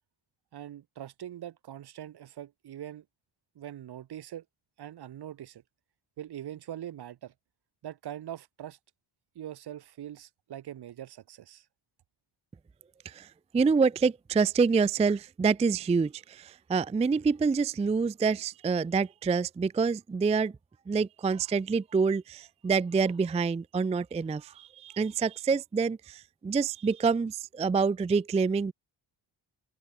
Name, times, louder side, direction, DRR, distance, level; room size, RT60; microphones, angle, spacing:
voice 1, 0.5-3.0 3.5-4.4 4.8-5.6 6.2-7.3 7.8-8.8 9.3-11.7, right 11 dB, 55° right, 0.7 m, -42 dB
voice 2, 13.5-20.5 20.9-28.7, right 5 dB, 15° right, 0.3 m, -27 dB
open air
wide cardioid pair, 130°, 47 cm